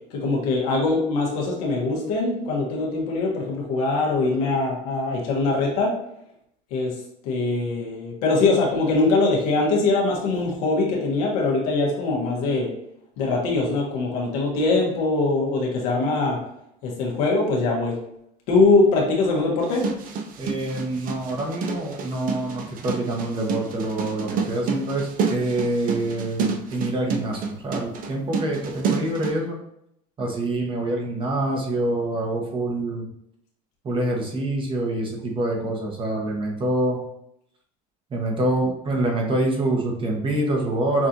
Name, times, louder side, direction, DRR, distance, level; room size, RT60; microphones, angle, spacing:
voice 1, 0.1-5.9 6.7-7.0 7.2-12.7 13.2-16.4 16.8-18.0 18.5-19.9, left 3 dB, 85° left, -2 dB, 1.4 m, -22 dB
sound 1, 19.6-29.4, right 5 dB, 50° right, 0.6 m, -29 dB
voice 2, 20.4-29.6 30.2-33.1 33.8-37.0 38.1-41.1, right 1 dB, 30° right, 0 dB, 1.0 m, -26 dB
5.9 x 2.6 x 2.9 m, 0.77 s
cardioid pair, 125°, 18 cm